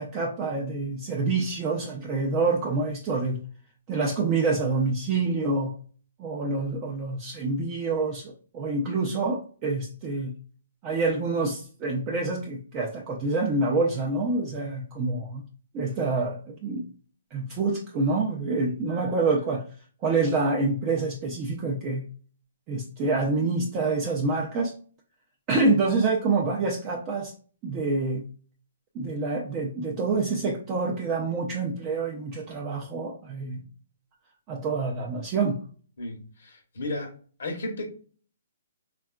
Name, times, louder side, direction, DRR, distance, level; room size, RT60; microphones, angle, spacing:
voice 1, 0.0-3.4 3.9-5.7 6.2-10.3 10.8-15.4 15.7-16.9 17.3-19.6 20.0-22.0 22.7-24.7 25.5-27.3 27.6-28.2 28.9-33.6 34.5-35.6, right 3 dB, 30° right, 0.4 m, -27 dB
voice 2, 36.0-37.1 37.4-37.9, left 1 dB, 75° left, 0.8 m, -34 dB
3.5 x 2.3 x 2.2 m
hypercardioid pair, 150°, 0 cm